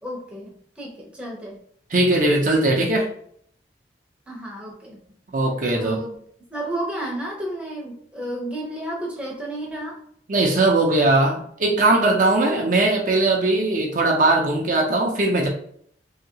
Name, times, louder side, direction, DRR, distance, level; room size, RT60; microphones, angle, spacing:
voice 1, 0.0-1.6 4.3-5.0 5.7-6.2 6.5-10.0, right 1 dB, 5° right, -3 dB, 0.7 m, -32 dB
voice 2, 1.9-3.1 5.3-6.0 10.3-15.5, right 2 dB, 45° right, -1 dB, 0.6 m, -19 dB
2.8 x 2.8 x 2.7 m, 0.62 s
head